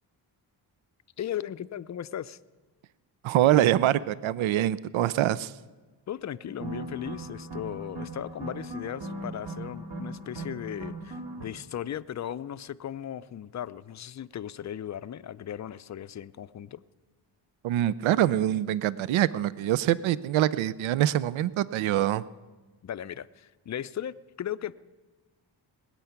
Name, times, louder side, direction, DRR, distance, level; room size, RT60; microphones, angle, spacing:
voice 1, 1.2-2.4 6.1-16.8 22.8-24.8, left 10 dB, 35° left, 16 dB, 0.5 m, -37 dB
voice 2, 3.2-5.5 17.6-22.2, right 13 dB, 75° right, 18 dB, 0.6 m, -24 dB
sound 1, 6.5-11.5, right 2 dB, 55° right, 2.0 m, -38 dB
20.0 x 8.4 x 5.9 m, 1.2 s
cardioid pair, 65°, 48 cm